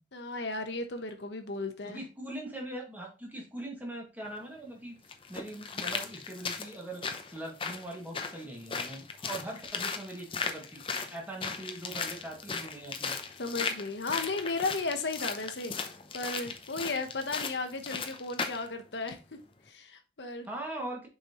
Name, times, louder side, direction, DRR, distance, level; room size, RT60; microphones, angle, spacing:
voice 1, 0.1-2.0 13.4-15.8 16.1-19.2 19.7-20.5, left 3 dB, 80° left, 1.1 m, -35 dB
voice 2, 1.8-5.0 5.3-10.8 11.1-13.1 20.4-21.1, right 1 dB, 10° right, 2.1 m, -41 dB
sound 1, 4.3-4.4 5.1-18.7 19.1-19.2, left 5 dB, 30° left, 0.7 m, -37 dB
6.9 x 5.4 x 3.1 m
head